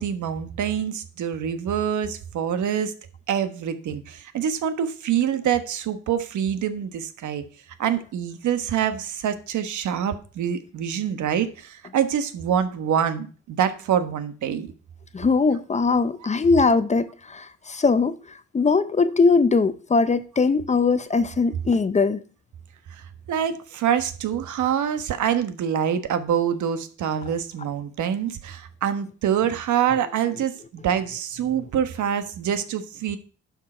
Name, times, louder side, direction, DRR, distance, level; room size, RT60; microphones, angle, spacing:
voice 1, 0.0-2.9 3.3-7.4 7.8-14.7 22.9-33.2, right 9 dB, 75° right, 1.3 m, -25 dB
voice 2, 15.1-18.1 18.5-22.2, left 4 dB, 25° left, 0.6 m, -20 dB
11.5 x 6.6 x 4.4 m
cardioid pair, 120°, 30 cm